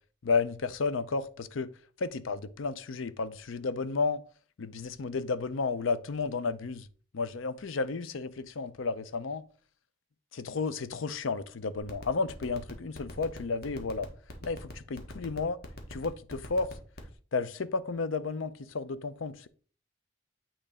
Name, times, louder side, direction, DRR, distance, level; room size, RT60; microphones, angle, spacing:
voice 1, 0.2-1.7 2.0-4.2 4.6-6.9 7.1-9.4 10.3-14.1 14.4-15.6 15.9-16.7 17.3-19.5, left 4 dB, 80° left, 0.6 m, -32 dB
sound 1, 11.8-17.1, left 2 dB, 55° left, 1.3 m, -42 dB
8.8 x 3.0 x 4.9 m
head